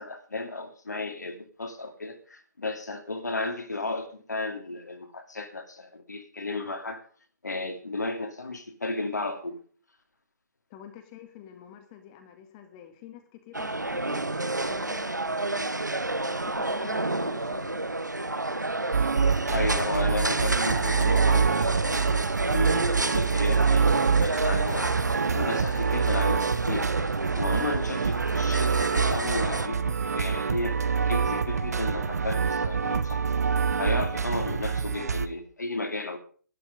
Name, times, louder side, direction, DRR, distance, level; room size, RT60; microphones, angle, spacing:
voice 1, 0.0-7.0 7.4-9.6 19.5-24.9 25.3-26.9 27.3-30.8 31.0-33.2 33.8-36.2, left 2 dB, 70° left, 6 dB, 2.5 m, -33 dB
voice 2, 10.7-14.2 14.6-18.1, left 9 dB, 25° left, 6 dB, 1.8 m, -48 dB
sound 1, 13.5-29.7, right 2 dB, 85° right, 1.2 m, -30 dB
sound 2, 18.9-35.3, right 6 dB, 65° right, 1.0 m, -26 dB
12.0 x 11.5 x 5.2 m, 0.43 s
figure-of-eight pair, 135°, 10 cm